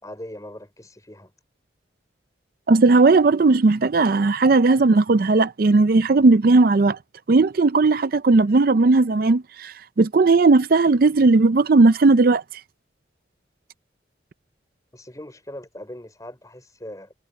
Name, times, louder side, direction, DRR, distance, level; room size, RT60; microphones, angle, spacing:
voice 1, 0.0-1.3 14.9-17.1, left 1 dB, 20° left, 4.6 m, -40 dB
voice 2, 2.7-7.0 7.3-12.4, right 3 dB, 50° right, 0.4 m, -16 dB
head